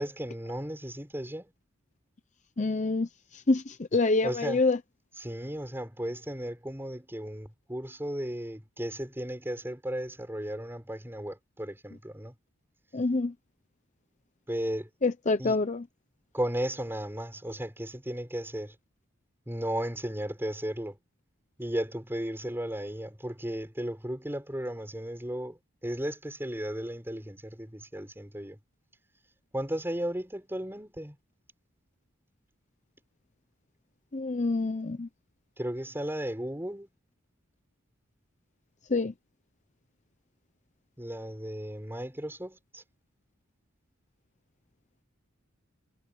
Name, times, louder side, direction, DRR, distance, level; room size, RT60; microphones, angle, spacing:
voice 1, 0.0-1.5 4.2-4.6 5.2-12.4 14.5-14.9 15.4-15.6 16.3-18.7 19.5-21.0 21.6-28.6 29.5-31.2 35.6-36.9 41.0-42.8, right 1 dB, 10° right, 6.3 m, -35 dB
voice 2, 2.6-3.1 3.3-4.8 12.9-13.3 15.0-15.8 34.1-35.1 38.9-39.1, left 3 dB, 35° left, 0.7 m, -26 dB
head